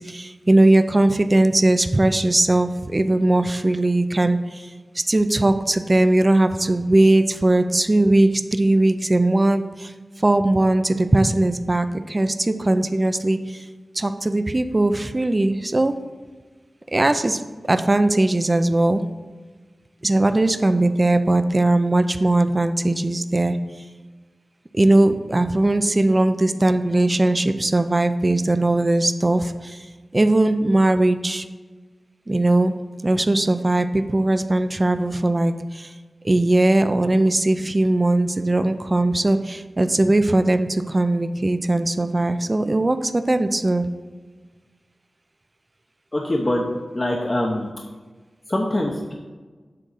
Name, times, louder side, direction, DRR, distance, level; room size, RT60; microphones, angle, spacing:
voice 1, 0.0-4.7 5.1-9.9 10.2-13.6 13.9-15.9 16.9-19.0 20.0-23.6 24.7-29.9 30.1-31.4 32.3-32.7 33.0-35.9 36.2-43.9, right 2 dB, 30° right, 9 dB, 0.5 m, -19 dB
voice 2, 46.1-46.6 46.9-47.7 48.5-49.1, left 1 dB, 30° left, 0 dB, 0.8 m, -23 dB
7.7 x 3.7 x 6.4 m, 1.4 s
wide cardioid pair, 70°, 0 cm